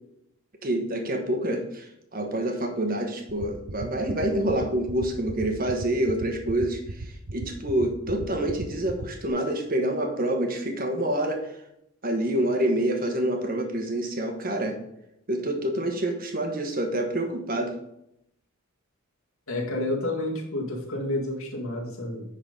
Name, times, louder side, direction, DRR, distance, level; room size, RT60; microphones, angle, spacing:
voice 1, 0.6-11.5 12.0-14.8 15.3-17.7, right 1 dB, 40° right, 4 dB, 1.3 m, -27 dB
sound 1, 3.3-9.3, right 2 dB, 90° right, 0.8 m, -34 dB
voice 2, 19.5-22.2, left 1 dB, 70° left, -1 dB, 1.9 m, -30 dB
9.9 x 4.0 x 5.3 m, 0.79 s
head